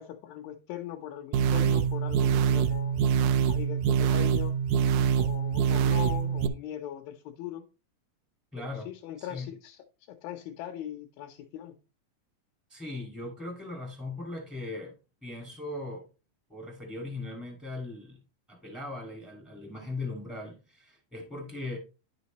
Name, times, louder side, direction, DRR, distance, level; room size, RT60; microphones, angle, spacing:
voice 1, 0.0-3.0 3.5-4.5 5.2-7.7 8.6-9.8 10.1-11.7, left 11 dB, 85° left, 2.5 m, -40 dB
sound 1, 1.3-6.5, right 7 dB, 80° right, 2.0 m, -25 dB
voice 2, 8.5-8.9 9.2-9.5 12.7-14.9 15.2-16.1 16.5-18.2 18.5-21.8, left 2 dB, ahead, 0.7 m, -39 dB
9.8 x 6.2 x 3.0 m
omnidirectional pair, 4.0 m